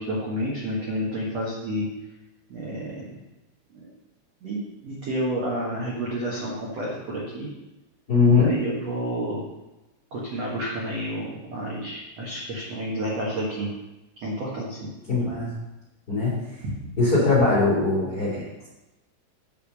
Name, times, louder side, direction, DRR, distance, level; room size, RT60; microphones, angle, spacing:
voice 1, 0.0-1.9 2.5-3.2 3.7-3.8 4.4-7.5 8.4-9.4 10.1-13.7 14.2-14.9, equal, 65° right, -5 dB, 1.6 m, -30 dB
voice 2, 8.1-8.6 15.1-15.5 16.1-16.4 17.0-18.7, left 3 dB, 25° left, -7 dB, 2.4 m, -21 dB
8.0 x 5.6 x 6.4 m, 1.0 s
omnidirectional pair, 5.4 m